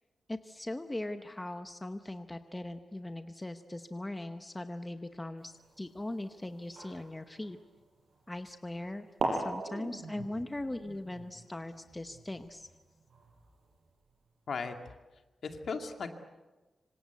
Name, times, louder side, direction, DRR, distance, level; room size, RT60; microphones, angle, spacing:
voice 1, 0.3-7.6 8.3-9.1 9.3-12.7, left 1 dB, 10° left, 8 dB, 0.9 m, -40 dB
sound 1, 5.4-8.3 8.9-9.0 9.2-13.8, right 3 dB, 60° right, 7.2 m, -41 dB
voice 2, 14.5-15.0 15.4-16.1, left 4 dB, 55° left, 5 dB, 2.3 m, -37 dB
26.0 x 26.0 x 8.2 m, 1.2 s
wide cardioid pair, 180°, 0 cm